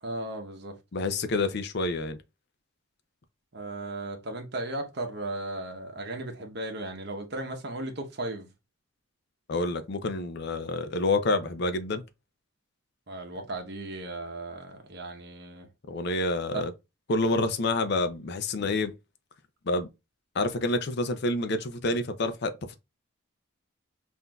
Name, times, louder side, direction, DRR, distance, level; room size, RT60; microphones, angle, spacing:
voice 1, 0.0-0.7 3.5-8.5 13.1-15.7 16.5-16.7, right 2 dB, 50° right, 0.9 m, -36 dB
voice 2, 0.9-2.2 9.5-12.0 15.9-16.7 17.1-18.9 19.7-19.9 20.4-22.7, left 2 dB, 50° left, 0.5 m, -28 dB
5.7 x 2.6 x 2.3 m
head